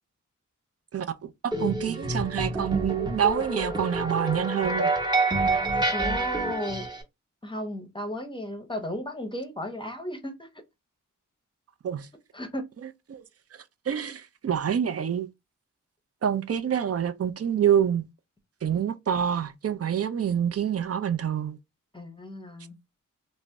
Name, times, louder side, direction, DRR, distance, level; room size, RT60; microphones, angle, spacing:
voice 1, 1.4-4.9 11.8-12.1 13.1-13.2 13.9-15.3 16.2-18.1 18.6-21.6, right 9 dB, 50° right, 0.4 m, -26 dB
sound 1, 1.5-7.0, right 2 dB, 15° right, 0.8 m, -27 dB
voice 2, 5.9-6.9 7.4-10.5 12.3-12.6 21.9-22.8, equal, 15° left, 0.7 m, -34 dB
2.6 x 2.0 x 3.3 m
cardioid pair, 60°, 32 cm